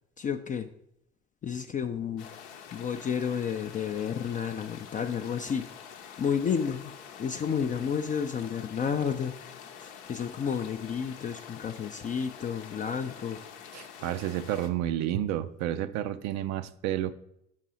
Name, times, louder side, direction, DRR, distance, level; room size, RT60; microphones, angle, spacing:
voice 1, 0.2-0.7 1.4-2.3 2.7-5.7 6.2-6.9 7.2-9.5 9.8-13.4, left 7 dB, 25° left, 0.4 m, -31 dB
sound 1, 2.2-14.7, left 8 dB, 70° left, 0.7 m, -46 dB
voice 2, 13.7-17.1, right 12 dB, 50° right, 0.5 m, -30 dB
6.3 x 5.3 x 4.2 m
figure-of-eight pair, 55°, 35 cm